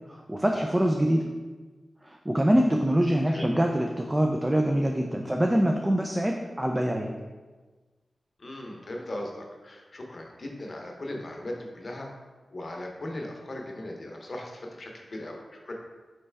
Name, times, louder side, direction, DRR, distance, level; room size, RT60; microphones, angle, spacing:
voice 1, 0.1-1.3 2.0-7.1, right 1 dB, 20° right, 2 dB, 0.4 m, -24 dB
voice 2, 8.4-12.1 12.5-15.4 15.7-15.8, left 1 dB, 55° left, 0 dB, 0.8 m, -38 dB
4.1 x 3.2 x 3.4 m, 1.3 s
cardioid pair, 40°, 0 cm